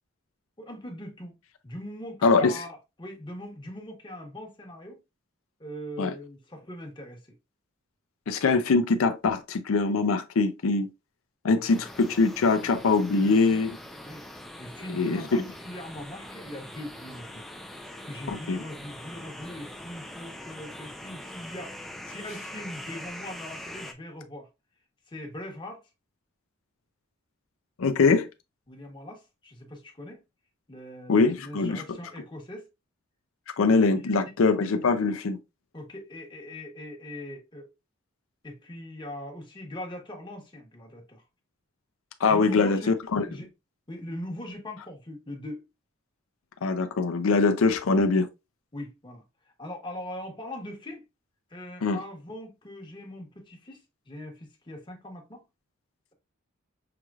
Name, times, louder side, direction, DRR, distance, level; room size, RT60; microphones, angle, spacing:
voice 1, 0.6-1.3 1.6-5.0 5.6-7.2 11.7-11.9 12.5-12.7 14.0-14.2 14.6-17.5 18.0-24.5 25.1-25.8 28.7-30.2 30.7-32.7 33.9-34.2 35.7-37.7 38.4-41.2 42.3-43.5 43.9-45.6 48.7-49.2 49.6-51.0 51.5-55.4, left 1 dB, 25° left, 1.1 m, -41 dB
voice 2, 2.2-2.6 6.0-6.1 8.3-10.9 11.4-13.8 14.9-15.4 18.3-18.6 27.8-28.3 31.1-31.8 33.6-35.4 42.2-43.2 46.6-48.3 51.8-52.0, left 4 dB, 90° left, 0.5 m, -23 dB
sound 1, 11.7-23.9, left 1 dB, ahead, 0.5 m, -43 dB
5.8 x 3.1 x 2.4 m
head